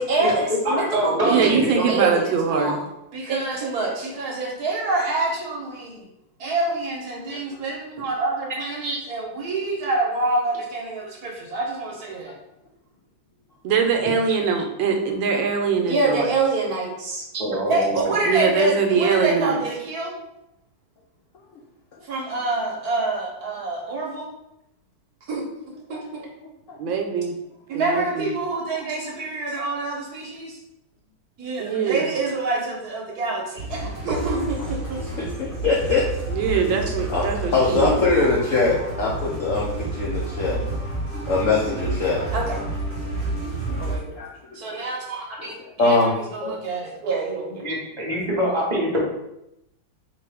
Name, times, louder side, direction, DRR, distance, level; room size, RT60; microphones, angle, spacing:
voice 1, 0.0-2.8 3.1-6.0 6.4-12.3 15.9-17.2 17.7-20.1 22.0-24.2 25.3-25.4 25.9-26.0 27.7-30.6 31.4-33.8 34.0-35.0 42.3-42.6 43.8-44.1 44.5-46.0 46.3-47.6, right 3 dB, 60° right, -2 dB, 1.2 m, -26 dB
voice 2, 0.6-1.9 7.1-7.3 8.6-9.0 17.3-17.9 46.4-46.5 47.6-49.0, equal, 30° right, -3 dB, 0.8 m, -25 dB
voice 3, 1.2-2.8 13.6-16.3 18.3-19.6 26.8-27.3 27.7-28.3 31.6-32.1 36.3-38.0, right 5 dB, 80° right, 3 dB, 1.3 m, -22 dB
voice 4, 7.3-7.6 25.9-26.0 26.7-26.8 28.7-28.8 35.0-36.1 36.5-36.6 37.1-40.6 41.3-42.2 43.4-43.5 43.8-44.6 45.4-46.1 48.1-48.2, left 3 dB, 75° left, -3 dB, 0.7 m, -23 dB
sound 1, 33.6-44.0, right 2 dB, 35° left, 1.1 m, -30 dB
4.4 x 3.0 x 3.3 m, 0.85 s
omnidirectional pair, 2.2 m